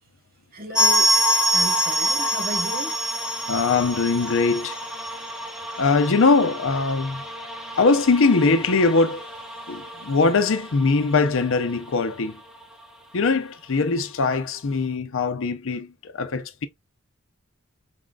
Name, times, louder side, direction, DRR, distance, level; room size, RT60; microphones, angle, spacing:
voice 1, 0.5-1.1 1.5-3.0 9.9-10.1, equal, 45° right, 1.0 m, -34 dB
sound 1, 0.7-11.3 11.5-11.6 11.9-12.0 12.6-12.7, equal, 5° right, 0.6 m, -26 dB
voice 2, 3.5-4.8 5.8-7.2 7.8-9.2 9.7-12.4 13.1-16.7, left 4 dB, 65° left, 0.6 m, -21 dB
4.2 x 3.7 x 2.3 m
head